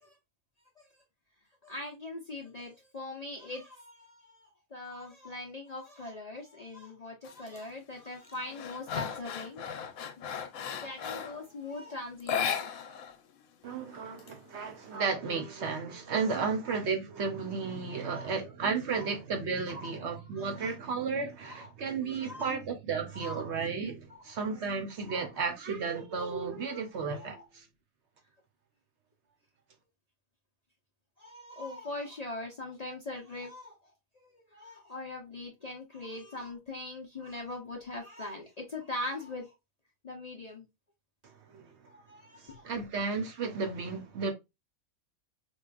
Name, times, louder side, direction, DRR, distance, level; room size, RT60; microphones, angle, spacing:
voice 1, 1.6-9.6 9.9-10.1 10.7-12.9 16.4-16.5 17.8-18.3 18.9-19.1 19.6-20.8 21.4-21.7 22.1-22.5 23.1-23.5 24.1-24.2 25.1-25.3 27.0-27.5 31.2-39.5 40.0-40.7 41.8-42.8, left 2 dB, 40° left, 0.6 m, -42 dB
sound 1, 7.2-7.6 8.0-11.5 12.2-13.2 13.4-13.5 13.9-14.8, left 7 dB, 85° left, 1.1 m, -36 dB
voice 2, 13.6-27.4 41.5-41.7 42.4-44.3, right 5 dB, 60° right, 0.9 m, -33 dB
4.5 x 2.4 x 2.3 m
omnidirectional pair, 1.5 m